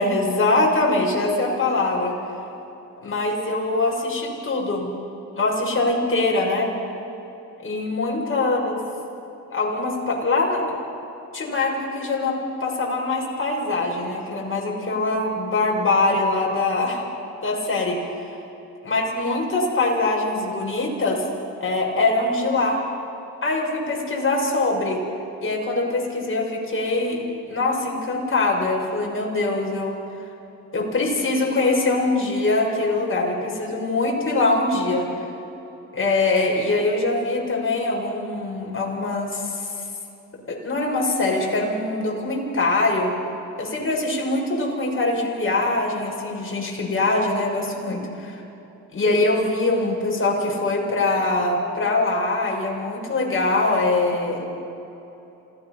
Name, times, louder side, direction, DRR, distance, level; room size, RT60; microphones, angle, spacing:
voice 1, 0.0-2.1 3.0-4.9 5.3-6.7 7.6-8.8 9.5-10.8 11.3-17.0 17.4-18.3 18.8-21.2 21.6-22.8 23.4-25.0 25.4-27.2 27.4-30.0 30.7-35.1 35.9-39.7 40.5-43.1 43.6-48.4 48.9-54.4, left 2 dB, 35° left, -2 dB, 6.8 m, -23 dB
27.0 x 18.0 x 5.9 m, 2.9 s
supercardioid pair, 65°, 35 cm